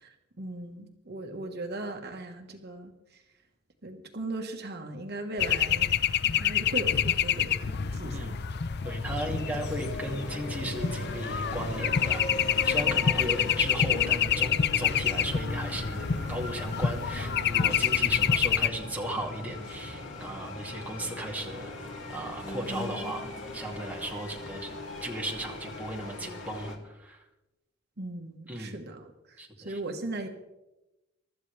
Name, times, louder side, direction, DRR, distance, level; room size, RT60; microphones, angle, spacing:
voice 1, 0.0-3.2 3.8-5.9 6.2-8.4 28.0-30.3, right 2 dB, 55° right, 4 dB, 1.4 m, -38 dB
sound 1, 5.4-18.7, left 8 dB, 60° left, 0.6 m, -27 dB
voice 2, 8.8-12.3 12.6-21.8 22.1-24.7 25.0-27.2 28.5-28.8 29.4-29.8, right 1 dB, 10° right, -1 dB, 2.4 m, -36 dB
sound 2, 9.0-26.8, left 2 dB, 75° left, 2.9 m, -39 dB
24.0 x 12.5 x 3.4 m, 0.98 s
head